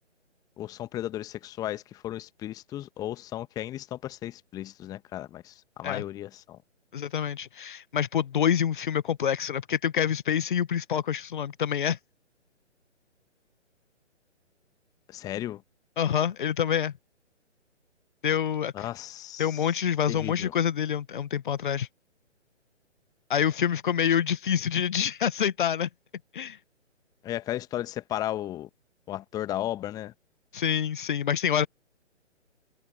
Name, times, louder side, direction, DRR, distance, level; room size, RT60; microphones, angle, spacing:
voice 1, 0.6-6.6 15.1-15.6 18.7-19.6 20.1-20.5 27.2-28.7 29.1-30.1, left 13 dB, 10° left, 1.4 m, -35 dB
voice 2, 6.9-12.0 16.0-16.9 18.2-18.9 19.4-21.9 23.3-25.9 26.3-26.6 30.5-31.7, left 8 dB, 40° left, 1.4 m, -27 dB
figure-of-eight pair, 135°, 37 cm